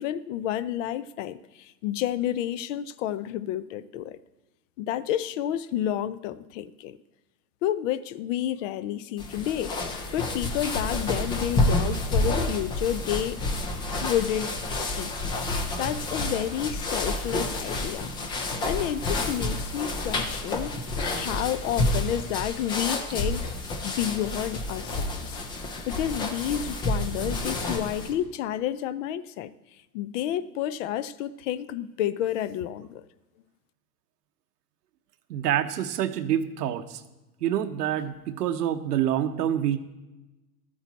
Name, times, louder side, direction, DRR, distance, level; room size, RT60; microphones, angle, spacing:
voice 1, 0.0-4.2 4.8-7.0 7.6-9.8 10.1-13.4 14.0-15.1 15.8-18.1 18.6-20.8 21.1-23.5 23.8-25.4 25.9-29.5 29.9-33.0, left 11 dB, 55° left, 0.6 m, -30 dB
sound 1, 9.2-28.1, left 2 dB, 10° left, 0.3 m, -29 dB
voice 2, 35.3-37.0 37.4-39.8, right 10 dB, 85° right, 1.0 m, -27 dB
12.5 x 8.8 x 4.0 m
hypercardioid pair, 130°, 46 cm